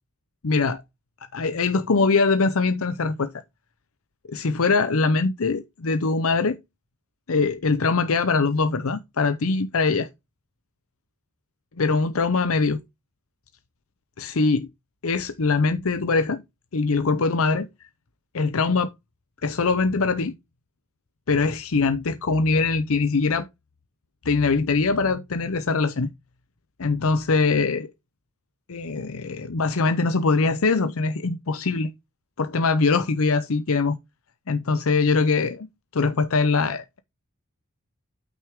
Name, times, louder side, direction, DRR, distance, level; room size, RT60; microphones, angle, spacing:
voice 1, 0.4-0.8 1.3-3.4 4.3-6.6 7.3-10.1 11.8-12.8 14.2-14.7 15.0-16.4 16.7-17.9 18.3-18.9 19.4-20.3 21.3-23.5 24.2-26.1 26.8-27.9 28.7-31.9 32.4-34.0 34.5-35.7 35.9-37.0, left 4 dB, 70° left, 0.7 m, -22 dB
8.9 x 6.2 x 3.6 m
head